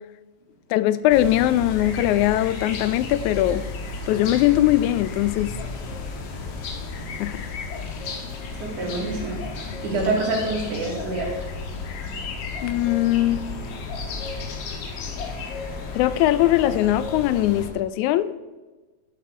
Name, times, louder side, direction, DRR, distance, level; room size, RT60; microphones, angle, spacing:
voice 1, 0.7-3.7 4.1-5.5 7.2-7.4 12.6-13.5 16.0-18.3, left 14 dB, 85° left, 1.9 m, -21 dB
sound 1, 1.1-17.7, left 4 dB, 60° left, 2.1 m, -33 dB
voice 2, 8.6-9.5 9.8-11.3, right 2 dB, 85° right, 4.1 m, -26 dB
11.0 x 9.9 x 4.7 m
omnidirectional pair, 3.4 m